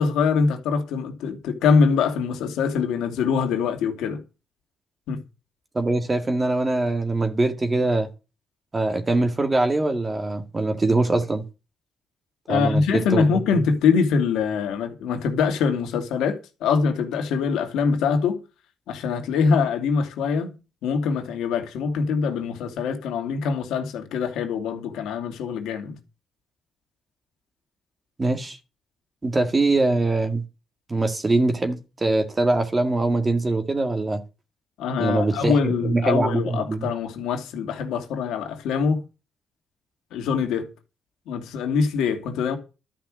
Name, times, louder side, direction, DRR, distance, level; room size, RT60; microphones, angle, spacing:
voice 1, 0.0-4.2 5.1-5.2 12.5-18.4 18.9-20.5 20.8-26.0 34.8-39.0 40.1-40.7 41.3-42.6, left 5 dB, 85° left, 2.5 m, -23 dB
voice 2, 5.7-8.1 8.7-11.5 12.5-13.2 28.2-28.6 29.2-30.4 30.9-34.2 35.0-36.9, right 2 dB, 25° right, 1.9 m, -23 dB
12.5 x 5.8 x 7.7 m
cardioid pair, 90°, 0 cm